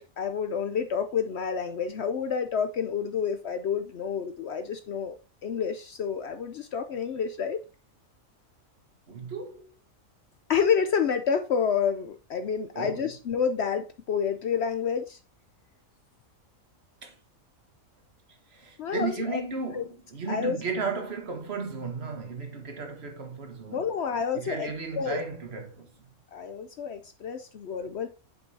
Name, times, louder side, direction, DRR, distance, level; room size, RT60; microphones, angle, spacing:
voice 1, 0.0-5.2 5.4-7.6 10.5-15.2 18.8-19.4 19.7-19.8 20.3-20.6 23.7-24.7 25.0-25.2 26.3-28.1, left 7 dB, 60° left, 0.8 m, -29 dB
voice 2, 9.1-9.7 12.7-13.1 17.0-17.2 18.5-23.8 24.3-25.9, right 4 dB, 50° right, 1.4 m, -34 dB
7.8 x 5.3 x 2.7 m
omnidirectional pair, 1.4 m